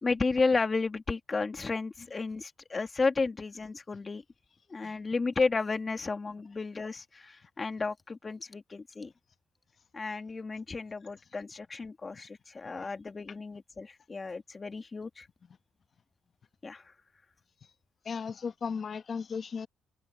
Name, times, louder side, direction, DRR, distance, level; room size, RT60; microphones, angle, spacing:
voice 1, 0.0-4.2 4.7-9.1 9.9-15.3 16.6-16.9, left 4 dB, 30° left, 2.4 m, -32 dB
voice 2, 18.0-19.7, left 6 dB, 45° left, 1.1 m, -35 dB
cardioid pair, 90°, 0 cm